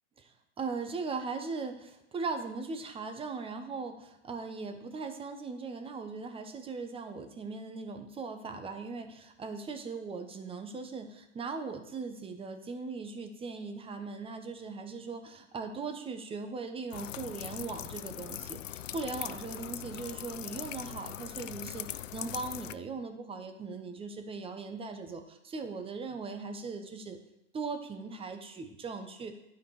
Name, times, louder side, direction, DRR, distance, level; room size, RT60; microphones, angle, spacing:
voice 1, 0.2-27.2 27.5-29.4, right 4 dB, 15° right, 6 dB, 1.0 m, -39 dB
sound 1, 16.9-22.7, left 11 dB, 85° left, 0.5 m, -41 dB
12.0 x 5.1 x 4.9 m, 0.86 s
hypercardioid pair, 110°, 37 cm